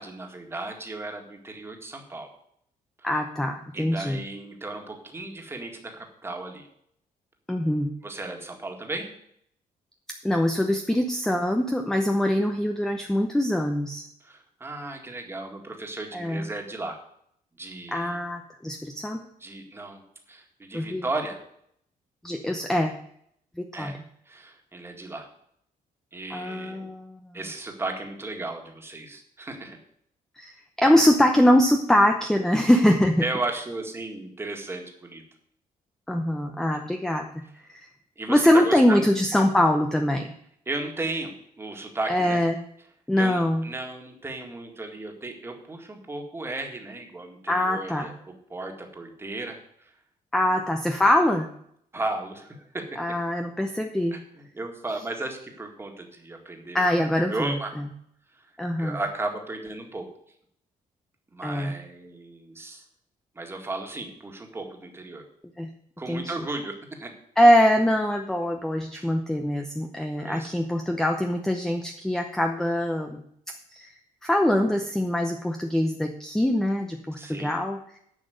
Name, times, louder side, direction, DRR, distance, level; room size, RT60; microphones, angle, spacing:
voice 1, 0.0-2.3 3.0-3.1 3.7-6.7 8.0-9.1 14.2-17.0 17.6-18.2 19.4-20.0 20.3-21.4 23.7-24.0 24.3-25.3 26.1-26.9 27.3-29.8 33.2-35.2 38.2-39.0 40.7-42.4 43.2-49.9 50.5-50.6 51.9-52.8 54.1-56.9 57.3-57.7 58.3-58.5 58.8-60.1 61.3-62.8 63.4-65.2 66.0-66.7 67.0-67.1 68.9-69.1 70.2-70.5 77.1-77.5, right 2 dB, 15° right, 3 dB, 2.0 m, -35 dB
voice 2, 3.0-4.2 7.5-7.9 10.2-14.1 16.1-16.5 17.9-19.2 20.7-21.0 22.2-22.9 23.6-23.9 26.3-27.2 30.4-33.2 36.1-37.3 37.7-37.8 38.3-40.3 42.1-42.6 43.1-43.7 47.5-48.1 50.3-51.5 53.0-54.2 56.7-57.5 58.6-59.0 61.4-61.7 65.6-65.7 66.1-66.3 67.4-73.2 73.7-73.9 74.2-77.8, left 1 dB, 5° left, 4 dB, 0.8 m, -23 dB
10.5 x 6.0 x 7.9 m, 0.69 s
cardioid pair, 150°, 14 cm